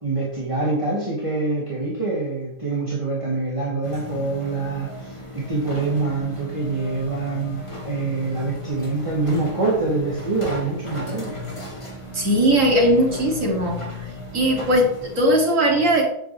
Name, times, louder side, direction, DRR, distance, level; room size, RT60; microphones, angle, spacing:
voice 1, 0.0-11.4, right 3 dB, 25° right, -7 dB, 2.6 m, -25 dB
sound 1, 3.8-15.2, left 2 dB, 25° left, 2.0 m, -36 dB
voice 2, 12.1-13.8 14.3-16.1, equal, 90° right, -1 dB, 2.8 m, -19 dB
10.0 x 8.7 x 3.2 m, 0.75 s
omnidirectional pair, 1.3 m